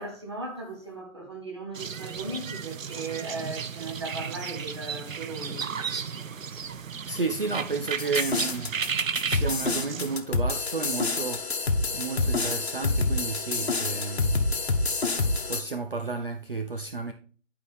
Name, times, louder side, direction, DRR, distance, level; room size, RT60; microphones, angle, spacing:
voice 1, 0.0-5.7 8.8-8.9, right 2 dB, 20° right, 1.0 m, -37 dB
sound 1, 1.7-10.2, right 6 dB, 80° right, 0.7 m, -33 dB
voice 2, 7.1-8.7 9.1-11.4 11.9-14.4 15.5-17.1, right 4 dB, 45° right, 0.5 m, -32 dB
sound 2, 8.0-15.6, left 3 dB, 55° left, 1.1 m, -27 dB
11.0 x 4.7 x 3.4 m
figure-of-eight pair, 170°, 39 cm